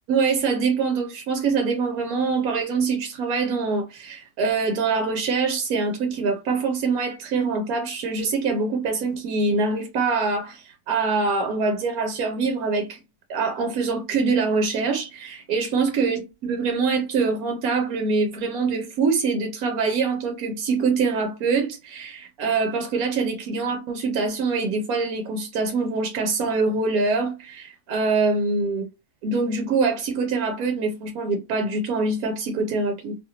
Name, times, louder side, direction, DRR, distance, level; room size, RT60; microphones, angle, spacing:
voice 1, 0.1-13.0 13.3-28.8 29.2-33.2, right 4 dB, 70° right, 1.0 m, -24 dB
2.7 x 2.5 x 2.8 m
omnidirectional pair, 1.7 m